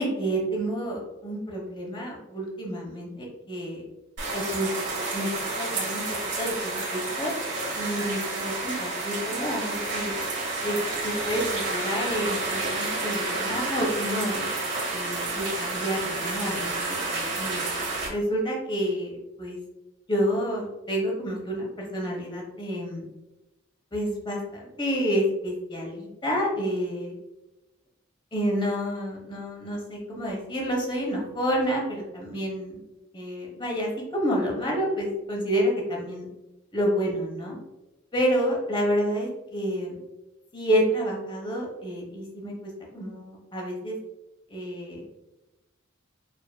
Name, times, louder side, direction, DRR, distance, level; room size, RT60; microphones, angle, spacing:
voice 1, 0.0-3.8 4.3-4.7 5.1-6.0 6.4-7.3 7.7-10.1 10.6-14.4 14.9-16.7 17.1-17.6 18.1-19.1 19.4-19.6 20.1-23.0 23.9-27.2 28.3-32.8 33.1-36.3 36.7-37.6 38.1-40.0 40.5-43.9 44.5-45.1, equal, 25° left, -2 dB, 1.1 m, -29 dB
sound 1, 4.2-18.1, right 3 dB, 60° right, 1.4 m, -30 dB
5.2 x 3.0 x 2.2 m, 1.0 s
head